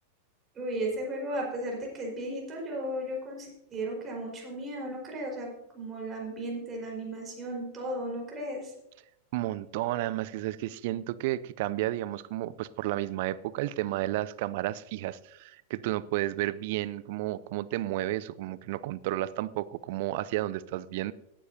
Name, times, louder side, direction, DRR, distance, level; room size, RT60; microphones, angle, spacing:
voice 1, 0.5-5.5 5.7-8.7, right 1 dB, 25° right, 4.8 m, -35 dB
voice 2, 9.3-21.1, right 15 dB, 50° right, 0.5 m, -32 dB
18.0 x 10.0 x 2.8 m
figure-of-eight pair, 90°, 0 cm